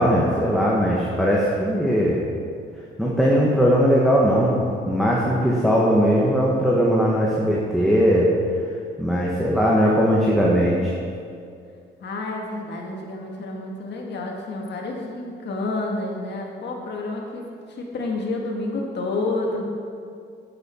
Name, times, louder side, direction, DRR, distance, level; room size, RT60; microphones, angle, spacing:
voice 1, 0.0-2.2 3.0-4.6 4.8-8.3 9.0-10.9, equal, ahead, -5 dB, 1.4 m, -19 dB
voice 2, 12.0-19.7, left 2 dB, 60° left, 0 dB, 1.8 m, -29 dB
8.6 x 8.0 x 4.5 m, 2.4 s
cardioid pair, 90°, 20 cm